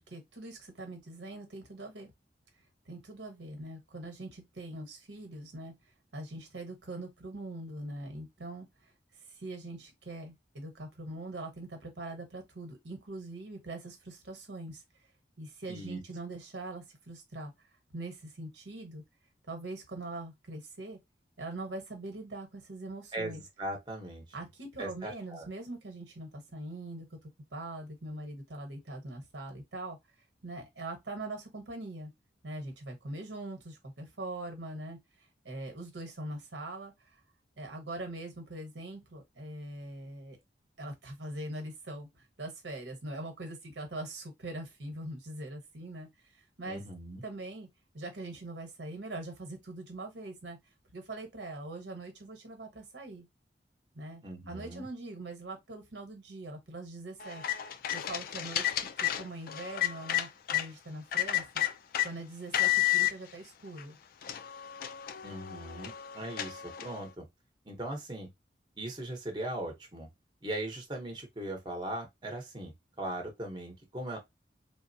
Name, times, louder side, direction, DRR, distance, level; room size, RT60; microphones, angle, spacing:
voice 1, 0.0-2.1 2.9-5.7 6.1-8.7 9.3-14.8 15.4-17.5 17.9-19.0 19.5-21.0 21.4-23.4 24.3-30.0 30.4-32.1 32.4-35.0 35.4-36.9 37.6-40.4 40.8-42.1 42.4-46.1 46.4-46.9 47.2-47.7 47.9-50.6 50.9-53.3 53.9-57.4 57.9-61.6 62.0-64.0, right 2 dB, 90° right, 1.0 m, -42 dB
voice 2, 15.7-16.0 23.1-24.2 24.8-25.5 46.7-47.2 54.2-54.9 65.2-67.3 67.6-68.3 68.8-70.1 70.4-72.7 73.0-74.2, right 1 dB, 25° right, 0.8 m, -39 dB
sound 1, 57.2-60.7 61.1-62.1 62.5-63.1 63.8-63.9 64.2-67.0, left 13 dB, 55° left, 0.3 m, -31 dB
3.6 x 2.0 x 2.6 m
head